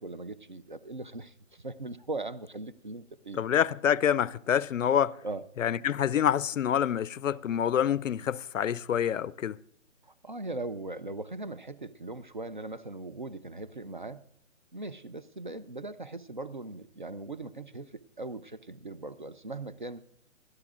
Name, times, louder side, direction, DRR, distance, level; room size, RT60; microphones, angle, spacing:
voice 1, 0.0-3.4 5.2-5.4 10.0-14.2 14.7-20.0, right 2 dB, 40° right, 0.4 m, -39 dB
voice 2, 3.3-5.2 5.6-9.6, left 9 dB, 75° left, 0.6 m, -27 dB
29.0 x 12.0 x 2.4 m
hypercardioid pair, 170°, 39 cm